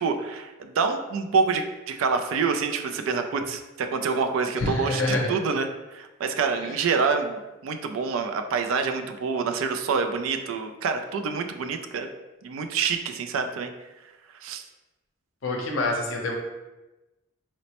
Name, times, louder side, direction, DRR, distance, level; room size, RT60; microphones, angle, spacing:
voice 1, 0.0-12.1 12.4-13.7 14.4-14.6, right 5 dB, 75° right, 6 dB, 0.3 m, -27 dB
voice 2, 4.6-5.3 6.6-6.7 15.4-16.3, left 2 dB, 65° left, 1 dB, 0.6 m, -26 dB
4.2 x 2.0 x 2.8 m, 1.1 s
head